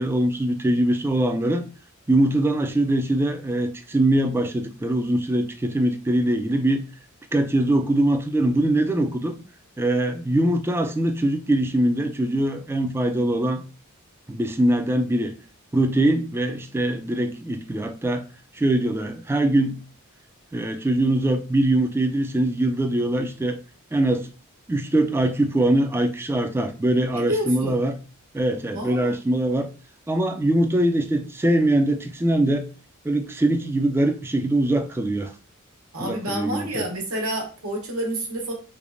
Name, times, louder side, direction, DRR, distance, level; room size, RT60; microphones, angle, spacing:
voice 1, 0.0-1.6 2.1-6.8 7.3-9.4 9.8-13.6 14.3-15.3 15.7-18.2 18.5-19.8 20.5-23.6 23.9-24.3 24.7-28.0 28.3-29.7 30.1-32.7 33.0-35.3 36.0-36.9, right 1 dB, 10° right, 0.3 m, -22 dB
voice 2, 27.1-27.8 28.7-29.2 35.9-38.5, right 1 dB, 85° right, 1.2 m, -29 dB
3.3 x 3.1 x 2.5 m
head